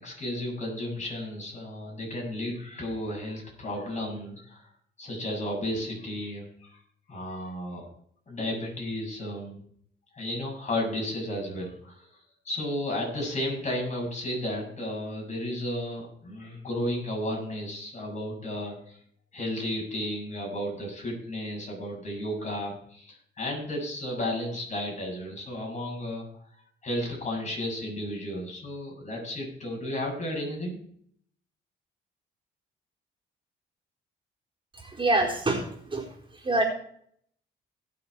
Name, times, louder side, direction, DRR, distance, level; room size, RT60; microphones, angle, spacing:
voice 1, 0.0-4.7 5.0-6.8 7.1-7.9 8.3-9.6 10.2-12.1 12.4-19.0 19.3-26.2 26.8-30.8, left 1 dB, 35° left, -1 dB, 7.2 m, -33 dB
voice 2, 34.7-36.1 36.3-36.6, right 2 dB, 25° right, -1 dB, 4.3 m, -26 dB
20.0 x 7.3 x 4.8 m, 0.64 s
cardioid pair, 90°, 20 cm